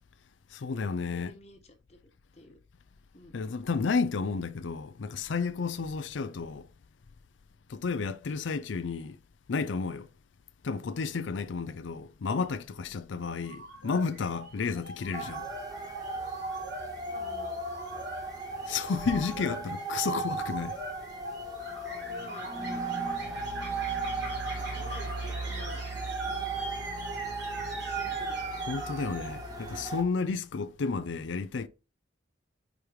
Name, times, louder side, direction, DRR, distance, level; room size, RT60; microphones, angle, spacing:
voice 1, 0.5-1.3 3.3-6.7 7.7-9.2 9.5-10.1 10.6-15.5 18.6-20.8 24.5-24.9 28.7-31.7, left 5 dB, 85° left, 0.5 m, -32 dB
voice 2, 1.1-2.0 2.3-2.6 3.1-3.4 17.0-17.7 22.0-22.9 24.7-25.8 26.2-26.5 27.1-27.3 27.6-28.7 29.0-29.1, left 1 dB, 35° left, 1.3 m, -51 dB
sound 1, 13.2-29.7, right 2 dB, 70° right, 3.2 m, -43 dB
sound 2, 15.1-30.0, right 3 dB, 20° right, 1.1 m, -36 dB
5.1 x 4.8 x 4.6 m
head